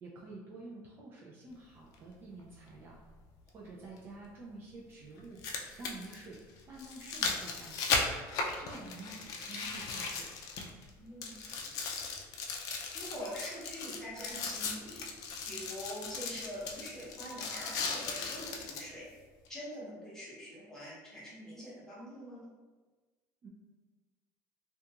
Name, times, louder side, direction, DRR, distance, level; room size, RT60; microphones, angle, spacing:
voice 1, 0.0-3.0 3.5-8.0 8.5-10.3 23.4-23.5, right 2 dB, 35° right, -4 dB, 0.4 m, -49 dB
sound 1, 1.9-2.0 4.0-4.1 5.2-10.9 11.2-18.9 19.5-19.6, left 4 dB, 55° left, 0.4 m, -37 dB
voice 2, 11.0-11.8 12.9-15.0 15.5-19.1 19.5-22.5, equal, 10° left, -8 dB, 0.9 m, -44 dB
2.4 x 2.3 x 2.8 m, 1.3 s
cardioid pair, 150°, 7 cm